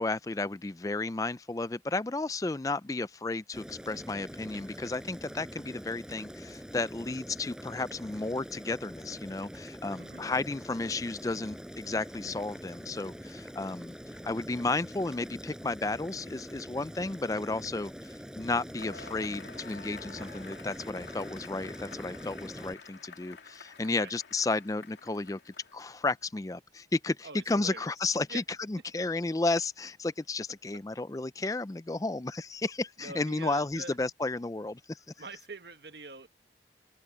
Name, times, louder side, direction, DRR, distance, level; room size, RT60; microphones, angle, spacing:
voice 1, 0.0-14.0 14.2-35.0, left 3 dB, 20° left, 0.4 m, -33 dB
Boiling, 3.5-22.7, equal, 5° right, 5.0 m, -44 dB
voice 2, 10.0-10.3 23.9-24.2 27.2-27.9 28.3-28.4 28.7-28.8 33.0-34.0 35.2-36.3, right 3 dB, 70° right, 1.8 m, -44 dB
Cheering / Applause / Crowd, 18.8-26.0, left 5 dB, 85° left, 2.5 m, -49 dB
head